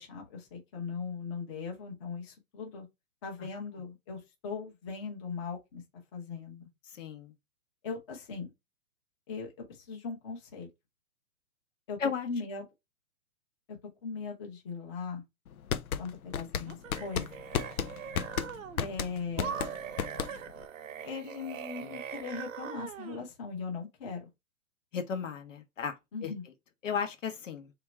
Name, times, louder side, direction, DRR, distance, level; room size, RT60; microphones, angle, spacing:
voice 1, 0.0-2.9 3.2-5.8 6.1-6.7 7.8-8.5 9.3-10.7 11.9-12.0 12.2-12.6 14.0-15.2 16.0-17.3 18.8-19.6 21.0-24.3 26.1-26.4, left 5 dB, 20° left, 0.9 m, -39 dB
voice 2, 6.9-7.3 12.0-12.3 24.9-26.0 26.2-26.3 26.8-27.7, left 6 dB, 60° left, 1.0 m, -34 dB
sound 1, 15.5-20.6, left 8 dB, 80° left, 0.7 m, -33 dB
sound 2, 16.6-18.9 19.4-23.3, right 8 dB, 65° right, 0.8 m, -41 dB
3.6 x 2.9 x 4.3 m
hypercardioid pair, 165°, 43 cm